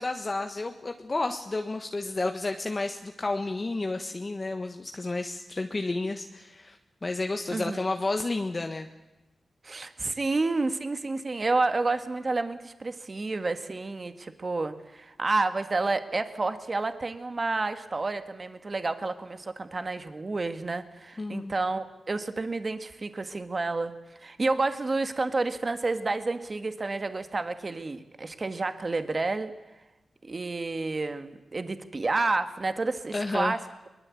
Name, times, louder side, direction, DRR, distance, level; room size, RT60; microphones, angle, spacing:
voice 1, 0.0-8.9 21.2-21.5 33.1-33.5, left 2 dB, 35° left, 5 dB, 1.3 m, -31 dB
voice 2, 9.6-23.9 24.2-29.5 30.2-33.6, right 3 dB, 40° right, 10 dB, 1.6 m, -30 dB
22.0 x 21.0 x 8.5 m, 1.0 s
cardioid pair, 75°, 0 cm